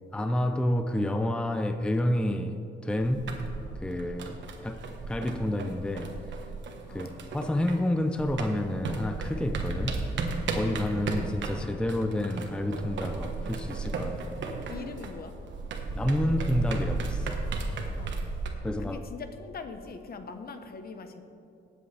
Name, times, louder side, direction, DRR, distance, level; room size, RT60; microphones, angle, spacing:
voice 1, 0.1-3.3 3.8-6.2 6.9-7.1 7.3-10.0 10.5-14.4 15.9-17.4 18.6-19.0, left 1 dB, 5° left, 0.6 m, -29 dB
sound 1, 3.0-7.9 8.2-18.5, right 3 dB, 65° right, 1.3 m, -34 dB
voice 2, 14.7-15.3 18.0-18.1 18.8-21.2, left 4 dB, 50° left, 1.0 m, -41 dB
19.0 x 7.8 x 3.4 m
cardioid pair, 90°, 20 cm